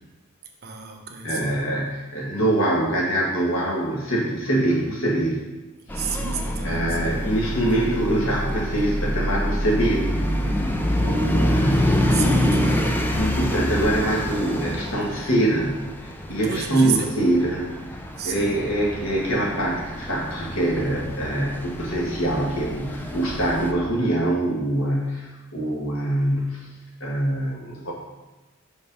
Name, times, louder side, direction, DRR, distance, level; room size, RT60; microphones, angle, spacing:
voice 1, 0.6-1.6 5.9-7.2 12.1-13.1 15.2-15.3 16.4-17.1 18.2-18.6, right 5 dB, 50° right, 2 dB, 0.9 m, -31 dB
voice 2, 1.2-5.4 6.1-6.2 6.6-10.2 11.0-12.1 13.1-17.7 18.2-26.7 27.0-27.9, right 1 dB, 75° left, -3 dB, 1.9 m, -24 dB
sound 1, 5.9-23.7, equal, 10° left, 0.5 m, -26 dB
5.6 x 5.3 x 5.4 m, 1.1 s
head